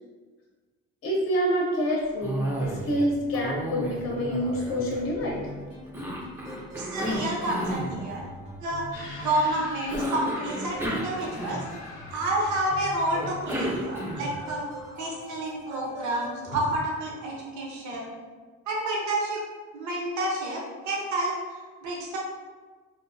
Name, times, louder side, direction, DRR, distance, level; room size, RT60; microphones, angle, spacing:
voice 1, 1.0-5.5 7.7-7.8 9.1-9.2, equal, 45° left, -3 dB, 0.6 m, -27 dB
Cough, 2.2-3.1 3.3-5.4 5.9-7.9 9.9-11.9 13.1-14.4, equal, 10° right, 0.4 m, -32 dB
sound 1, 5.1-16.8, left 1 dB, 90° right, 1.2 m, -44 dB
voice 2, 6.8-8.3 8.6-8.8 9.2-11.6 12.1-14.7 15.0-18.1 18.7-19.4 19.7-22.2, right 1 dB, 75° right, -2 dB, 0.7 m, -29 dB
sound 2, 8.9-17.6, left 1 dB, 85° left, 0.6 m, -44 dB
2.8 x 2.0 x 2.5 m, 1.4 s
cardioid pair, 90°, 30 cm